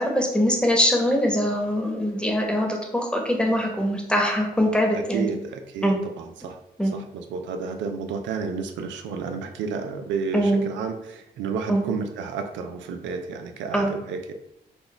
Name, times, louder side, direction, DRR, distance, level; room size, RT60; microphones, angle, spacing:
voice 1, 0.0-5.3 5.8-6.0 6.8-6.9 10.3-10.7 11.7-11.8 13.7-13.9, equal, 5° left, 1 dB, 1.1 m, -22 dB
voice 2, 4.9-6.6 6.8-14.3, right 5 dB, 85° right, 6 dB, 0.4 m, -31 dB
4.2 x 2.2 x 3.3 m, 0.82 s
supercardioid pair, 45°, 19 cm